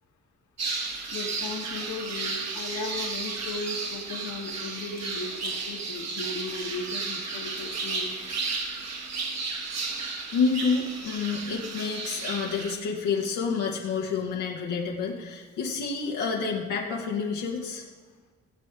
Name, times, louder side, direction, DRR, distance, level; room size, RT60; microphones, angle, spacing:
sound 1, 0.6-12.7, right 4 dB, 60° right, 1.5 m, -33 dB
voice 1, 1.1-8.2, left 3 dB, 70° left, 1 dB, 1.8 m, -36 dB
voice 2, 10.3-17.8, left 5 dB, 90° left, -3 dB, 1.6 m, -29 dB
18.0 x 7.5 x 3.7 m, 1.5 s
cardioid pair, 90°, 30 cm